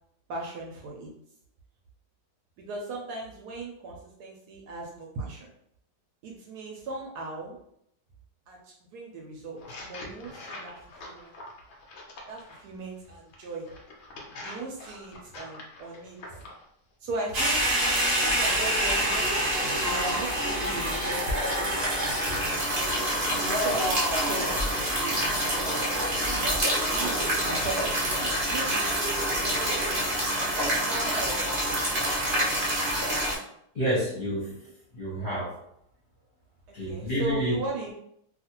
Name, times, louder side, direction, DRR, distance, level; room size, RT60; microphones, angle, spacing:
voice 1, 0.3-1.1 2.6-5.5 6.2-7.6 8.5-11.3 12.3-13.7 14.4-16.4 17.0-17.7 18.2-22.2 22.8-23.0 23.3-25.9 26.2-29.6 30.7-31.9 36.7-37.9, right 2 dB, 70° right, -1 dB, 1.0 m, -38 dB
sound 1, 9.6-12.6 13.3-16.6, left 2 dB, 80° left, 0.6 m, -44 dB
sound 2, 17.3-33.3, right 1 dB, 55° right, 0.6 m, -26 dB
voice 2, 33.7-34.5 34.9-35.5 36.7-37.6, equal, 40° left, -8 dB, 0.8 m, -28 dB
2.7 x 2.4 x 2.8 m, 0.72 s
omnidirectional pair, 1.9 m